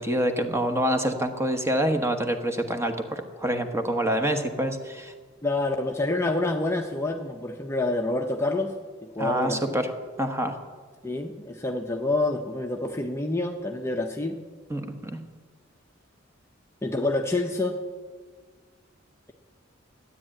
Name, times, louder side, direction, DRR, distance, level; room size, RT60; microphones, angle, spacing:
voice 1, 0.0-5.1 9.2-9.9 10.2-10.6 14.7-15.2, equal, 15° right, 6 dB, 1.2 m, -26 dB
voice 2, 5.4-8.7 9.0-9.8 11.0-14.3 16.8-17.8, left 2 dB, 15° left, 2 dB, 0.7 m, -27 dB
13.0 x 9.8 x 8.9 m, 1.5 s
head